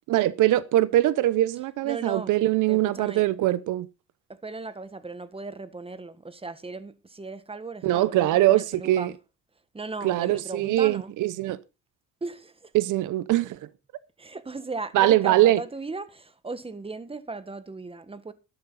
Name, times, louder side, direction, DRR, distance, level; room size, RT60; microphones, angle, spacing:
voice 1, 0.1-3.9 7.8-9.1 10.0-11.6 12.7-13.6 14.9-15.6, right 15 dB, 85° right, 0.8 m, -22 dB
voice 2, 1.8-2.3 2.7-3.2 4.3-9.1 9.7-11.1 12.2-12.7 14.2-18.3, right 3 dB, 20° right, 1.6 m, -37 dB
12.5 x 12.0 x 4.1 m
cardioid pair, 90°, 30 cm